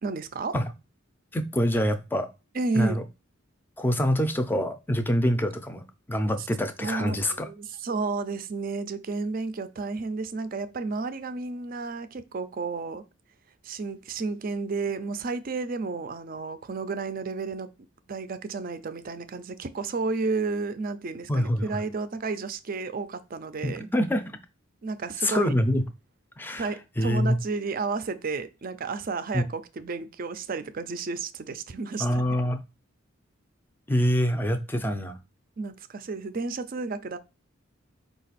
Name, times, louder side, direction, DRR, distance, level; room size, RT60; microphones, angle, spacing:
voice 1, 0.0-0.6 2.5-3.0 6.8-13.0 13.6-17.7 18.1-23.9 24.8-25.5 26.6-32.2 35.6-37.2, right 4 dB, 45° right, 0.4 m, -32 dB
voice 2, 1.3-2.3 2.7-3.0 3.8-7.5 21.3-21.8 23.6-24.4 25.2-25.8 26.4-26.7 27.0-27.4 29.3-29.4 32.0-32.6 33.9-35.2, equal, 10° left, 0.5 m, -25 dB
5.1 x 2.4 x 4.0 m
head